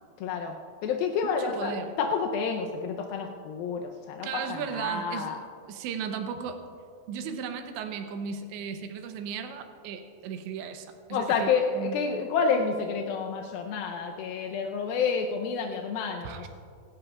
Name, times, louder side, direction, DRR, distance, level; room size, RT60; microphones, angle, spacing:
voice 1, 0.2-0.6 0.8-3.8 4.1-5.4 11.1-16.5, left 5 dB, 80° left, 2 dB, 2.2 m, -29 dB
voice 2, 1.2-1.9 4.2-5.4 5.7-6.6 7.1-12.3 16.2-16.5, right 6 dB, 90° right, 6 dB, 3.1 m, -36 dB
26.5 x 13.0 x 2.4 m, 2.3 s
omnidirectional pair, 5.0 m